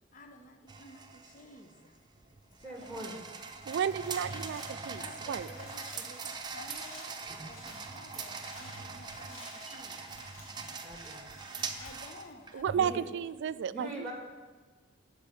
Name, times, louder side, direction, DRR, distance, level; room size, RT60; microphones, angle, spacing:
voice 1, 0.1-2.0 2.6-3.1 4.9-7.2 7.4-10.0 11.8-13.2, left 2 dB, 40° left, 5 dB, 0.8 m, -52 dB
sound 1, 0.7-13.1, right 4 dB, 20° right, 0.7 m, -42 dB
voice 2, 2.6-3.2 9.7-9.8 10.8-11.3 12.7-13.0 13.7-14.1, right 1 dB, 5° left, 1 dB, 1.6 m, -42 dB
sound 2, 3.5-11.9, left 1 dB, 90° left, 3.3 m, -53 dB
voice 3, 3.7-5.0 5.3-5.5 12.5-14.1, right 8 dB, 60° right, 17 dB, 0.3 m, -32 dB
10.5 x 5.5 x 7.0 m, 1.4 s
head